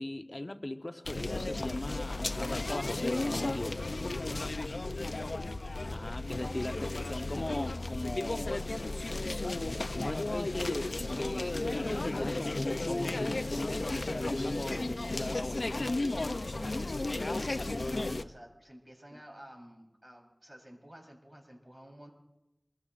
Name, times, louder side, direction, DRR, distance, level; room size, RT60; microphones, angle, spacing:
voice 1, 0.0-3.9 5.9-8.7 9.6-15.9 19.1-19.2, left 1 dB, 40° left, 1.0 m, -38 dB
sound 1, 1.1-18.2, left 2 dB, 75° left, 0.5 m, -34 dB
voice 2, 16.5-22.1, equal, 30° right, 3.9 m, -52 dB
25.0 x 22.5 x 2.5 m
wide cardioid pair, 55°, 0 cm